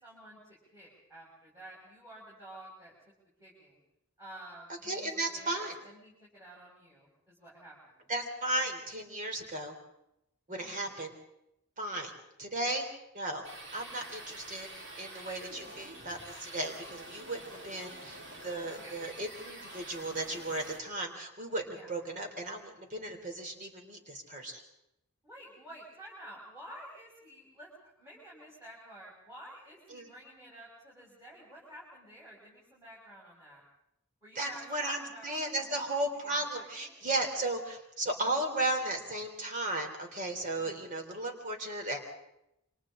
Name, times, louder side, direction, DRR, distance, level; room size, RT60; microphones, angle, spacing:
voice 1, 0.0-2.9 3.4-3.8 4.2-8.1 10.5-10.9 15.6-15.8 18.7-18.9 21.7-21.9 25.2-33.6 34.2-35.9 36.2-37.0 40.6-40.9, right 1 dB, 15° right, -7 dB, 6.4 m, -51 dB
voice 2, 4.8-5.7 8.1-9.7 10.5-11.1 11.8-12.1 12.4-12.9 13.1-24.6 29.9-30.1 34.3-42.0, right 1 dB, 35° right, 4 dB, 3.4 m, -35 dB
sound 1, 13.4-20.8, right 1 dB, 55° right, 4.2 m, -47 dB
28.5 x 25.5 x 3.8 m, 0.83 s
head